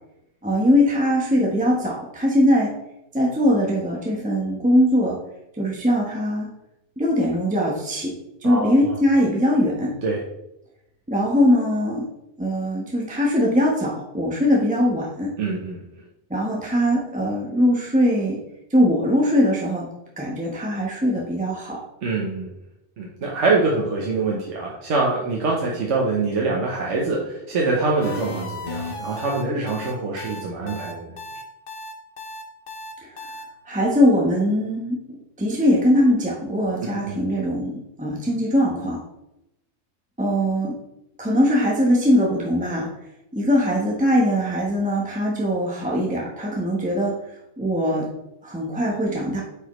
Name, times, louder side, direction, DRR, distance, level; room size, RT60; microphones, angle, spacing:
voice 1, 0.4-2.7 3.1-5.2 5.6-6.5 7.0-8.1 8.4-9.9 11.1-12.1 12.4-15.3 16.3-18.4 18.7-19.9 20.2-21.8 33.0-33.2 33.7-39.0 40.2-40.7 41.2-42.9 43.3-47.2 47.6-48.1 48.4-49.4, equal, 5° right, -2 dB, 1.0 m, -21 dB
voice 2, 8.4-8.9 10.0-10.2 15.4-15.8 22.0-22.5 23.0-31.1 37.1-37.2, right 3 dB, 85° right, -2 dB, 1.3 m, -24 dB
sound 1, 28.0-33.4, left 1 dB, 55° left, 1.1 m, -34 dB
8.3 x 4.9 x 3.1 m, 0.86 s
omnidirectional pair, 1.2 m